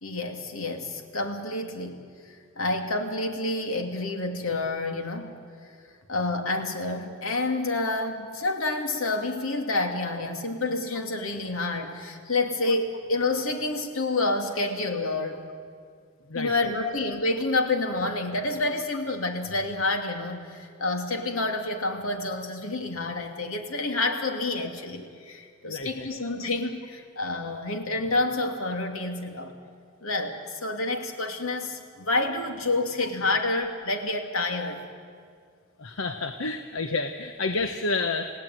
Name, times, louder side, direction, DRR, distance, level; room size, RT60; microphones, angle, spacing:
voice 1, 0.0-5.4 6.1-15.4 16.3-29.6 30.0-34.8, left 2 dB, 90° left, 5 dB, 2.7 m, -28 dB
voice 2, 16.3-16.7 25.7-26.1 35.8-38.3, left 3 dB, 75° left, 7 dB, 1.1 m, -30 dB
29.0 x 17.5 x 9.3 m, 2.1 s
head